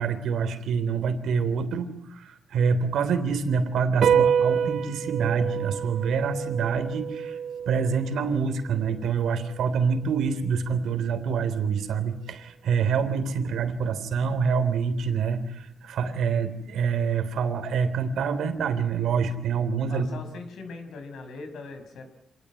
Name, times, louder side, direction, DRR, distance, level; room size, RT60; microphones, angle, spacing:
voice 1, 0.0-7.4 7.7-20.2, right 6 dB, 85° right, 10 dB, 3.4 m, -26 dB
sound 1, 4.0-10.7, right 8 dB, 70° right, 1.1 m, -28 dB
voice 2, 19.9-22.1, left 4 dB, 85° left, 7 dB, 6.0 m, -40 dB
27.5 x 18.5 x 9.8 m, 0.83 s
cardioid pair, 130°, 0 cm